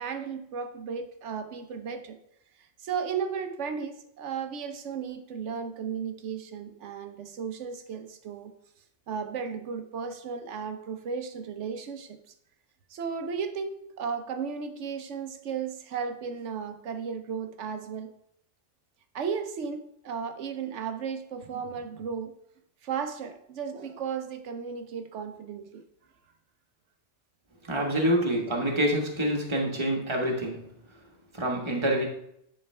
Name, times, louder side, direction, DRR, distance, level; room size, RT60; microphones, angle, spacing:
voice 1, 0.0-2.2 2.6-8.5 9.1-12.3 12.9-18.1 19.1-22.3 22.8-25.8 28.0-28.2, right 6 dB, 80° right, 7 dB, 1.1 m, -35 dB
voice 2, 27.6-30.7 31.3-32.0, right 1 dB, 25° right, -1 dB, 1.4 m, -26 dB
10.0 x 4.6 x 3.3 m, 0.75 s
omnidirectional pair, 1.2 m